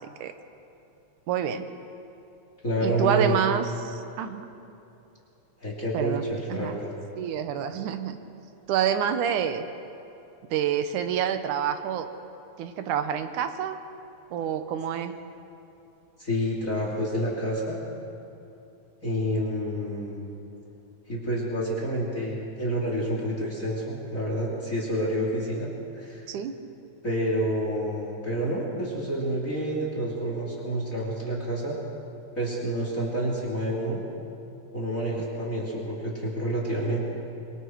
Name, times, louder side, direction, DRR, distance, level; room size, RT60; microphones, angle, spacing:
voice 1, 1.3-1.7 2.8-4.5 5.9-6.2 6.5-6.8 7.2-8.2 8.7-9.7 10.5-12.1 12.6-13.8 14.3-15.2 26.3-26.5, right 9 dB, 85° right, 9 dB, 2.5 m, -27 dB
voice 2, 2.6-3.4 5.6-6.9 16.2-17.8 19.0-20.3 21.1-25.7 25.9-26.2 27.0-31.8 32.3-34.0 34.7-37.1, right 1 dB, 25° left, -3 dB, 3.3 m, -28 dB
26.5 x 23.5 x 4.7 m, 2.8 s
omnidirectional pair, 3.5 m